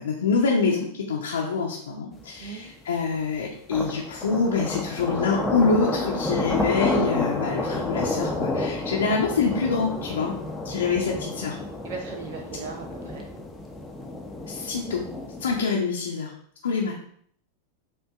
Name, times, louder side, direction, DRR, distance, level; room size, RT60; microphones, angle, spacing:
voice 1, 0.0-10.3 10.6-11.5 14.5-15.0 15.4-16.3 16.6-16.9, left 4 dB, 65° left, -2 dB, 0.7 m, -25 dB
sound 1, 2.2-2.3 3.7-15.6, left 2 dB, 5° left, 0.7 m, -30 dB
voice 2, 10.8-11.1 11.8-13.3, right 5 dB, 50° right, 2 dB, 0.7 m, -38 dB
7.5 x 2.6 x 2.4 m, 0.63 s
figure-of-eight pair, 90°, 0 cm